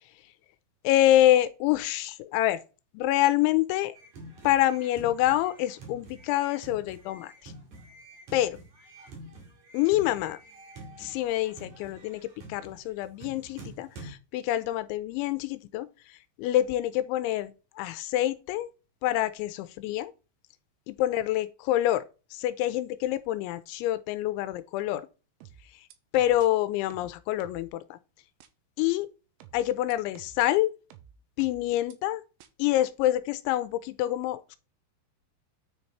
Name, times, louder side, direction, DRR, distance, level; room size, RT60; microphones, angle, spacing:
voice 1, 0.8-2.6 2.9-4.0 4.4-7.5 8.3-8.6 9.7-10.4 11.0-18.7 19.0-20.1 20.9-25.1 26.1-28.0 28.8-29.1 29.5-30.7 31.4-32.2 32.6-34.6, left 14 dB, 90° left, 3.0 m, -26 dB
sound 1, 3.9-14.1, right 1 dB, 45° right, 3.2 m, -47 dB
sound 2, 25.4-26.5 26.9-27.7 28.4-28.5 29.4-30.5 30.9-31.9 32.4-32.5, right 9 dB, 85° right, 3.2 m, -52 dB
9.6 x 4.1 x 4.6 m
omnidirectional pair, 5.3 m